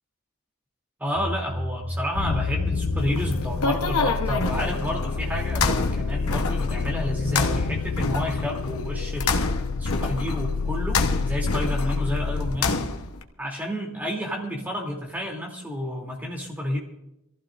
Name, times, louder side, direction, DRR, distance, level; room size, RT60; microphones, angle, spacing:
voice 1, 1.0-9.5 9.7-12.8 13.4-16.8, equal, 10° right, -1 dB, 3.1 m, -30 dB
sound 1, 1.2-6.5, equal, 70° right, 2.0 m, -34 dB
sound 2, 2.1-12.5, left 5 dB, 65° left, 0.4 m, -29 dB
sound 3, 3.0-13.2, left 3 dB, 80° left, 1.2 m, -28 dB
25.0 x 15.5 x 2.7 m, 0.88 s
head